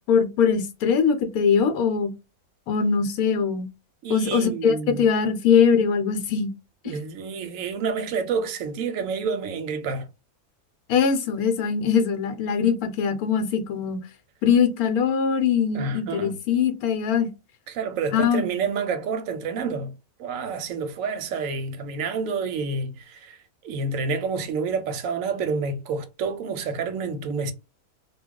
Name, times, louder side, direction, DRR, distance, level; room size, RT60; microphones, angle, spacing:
voice 1, 0.1-2.1 2.7-3.7 4.1-6.5 6.8-6.9 10.9-14.0 14.4-17.3 18.1-18.5, left 6 dB, 80° left, 1.1 m, -22 dB
voice 2, 4.0-5.1 6.8-10.1 15.7-16.4 17.7-19.9 20.2-27.5, right 5 dB, 70° right, 0.9 m, -29 dB
2.3 x 2.3 x 3.6 m
omnidirectional pair, 1.6 m